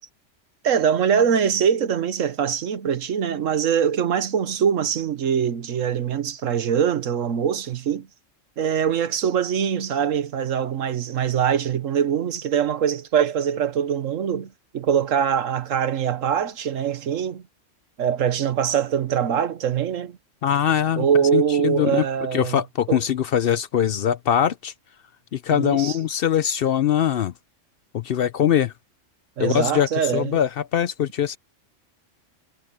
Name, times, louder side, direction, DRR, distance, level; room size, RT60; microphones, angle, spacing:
voice 1, 0.6-8.1 8.6-17.4 18.0-20.2 21.0-22.6 22.9-23.0 25.5-26.0 29.4-30.4, right 8 dB, 90° right, 1.4 m, -23 dB
voice 2, 20.4-21.1 21.3-22.0 22.3-24.7 25.3-27.3 27.9-28.7 29.4-31.4, left 9 dB, 60° left, 0.7 m, -22 dB
omnidirectional pair, 1.3 m